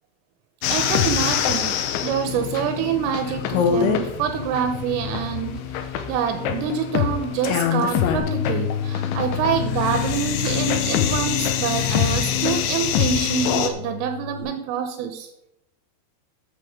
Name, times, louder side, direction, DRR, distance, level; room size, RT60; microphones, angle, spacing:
sound 1, 0.6-13.7, left 9 dB, 75° left, 3.1 m, -24 dB
voice 1, 0.7-15.3, right 8 dB, 85° right, 6 dB, 3.3 m, -26 dB
Bass guitar, 8.2-14.4, left 8 dB, 45° left, 4.2 m, -32 dB
14.0 x 8.6 x 3.7 m, 0.81 s
omnidirectional pair, 6.0 m